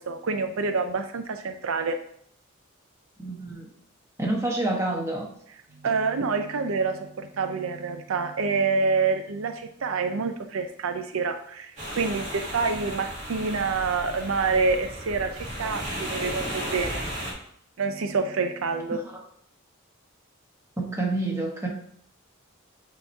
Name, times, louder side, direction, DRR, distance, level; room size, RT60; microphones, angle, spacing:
voice 1, 0.0-2.0 5.8-17.0 17.8-19.0, right 4 dB, 75° right, 7 dB, 0.5 m, -27 dB
voice 2, 3.2-3.7 4.2-5.3 19.1-19.2 20.8-21.7, right 2 dB, 15° right, -1 dB, 1.2 m, -28 dB
sound 1, 11.8-17.3, equal, 35° right, 1.9 m, -34 dB
7.9 x 2.9 x 4.5 m, 0.66 s
head